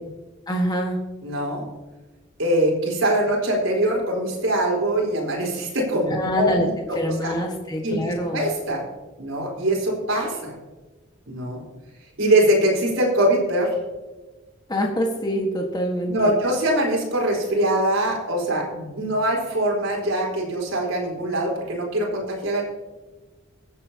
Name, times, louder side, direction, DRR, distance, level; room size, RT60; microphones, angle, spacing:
voice 1, 0.5-1.0 6.1-6.7 6.9-8.5 14.7-16.3, equal, 20° left, 1 dB, 1.5 m, -25 dB
voice 2, 1.2-1.6 2.4-7.0 7.2-7.3 7.8-8.8 9.2-10.5 11.3-11.6 12.2-13.7 16.1-22.6, right 1 dB, 85° right, -1 dB, 4.2 m, -23 dB
23.5 x 8.2 x 2.9 m, 1.2 s
head